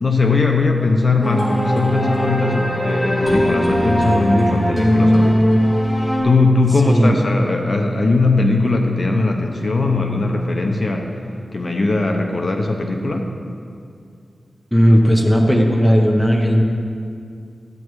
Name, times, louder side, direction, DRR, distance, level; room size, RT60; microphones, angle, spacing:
voice 1, 0.0-5.5 6.2-11.1 11.5-13.3, left 3 dB, 45° left, 2 dB, 0.7 m, -19 dB
sound 1, 1.2-6.2, equal, 20° left, 2.3 m, -18 dB
voice 2, 6.8-7.2 14.7-16.6, equal, ahead, 0 dB, 0.9 m, -14 dB
13.0 x 8.5 x 3.1 m, 2.4 s
wide cardioid pair, 125°, 0 cm